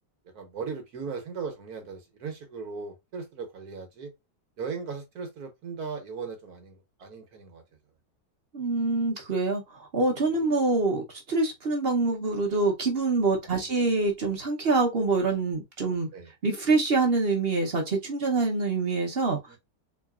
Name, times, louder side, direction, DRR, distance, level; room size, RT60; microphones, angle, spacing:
voice 1, 0.3-4.1 4.6-7.6 13.4-13.7 16.1-16.3 19.5-19.6, right 5 dB, 65° right, 1.4 m, -38 dB
voice 2, 8.5-9.6 9.9-16.1 16.4-19.6, right 3 dB, 45° right, 0.8 m, -25 dB
3.9 x 3.3 x 2.3 m
omnidirectional pair, 1.9 m